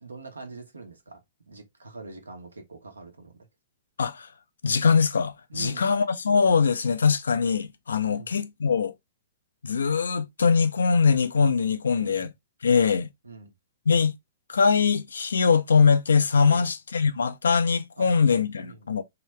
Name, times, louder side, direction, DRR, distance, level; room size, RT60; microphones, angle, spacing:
voice 1, 0.0-1.2 1.5-3.3 5.5-5.9 8.1-8.3 11.9-12.3 13.2-13.5 16.4-16.7 18.0-18.9, right 4 dB, 85° right, 1.1 m, -43 dB
voice 2, 4.6-8.9 9.6-12.3 12.6-13.1 13.9-14.1 14.5-19.0, left 5 dB, 80° left, 0.5 m, -22 dB
3.1 x 2.9 x 3.2 m
hypercardioid pair, 115°, 0 cm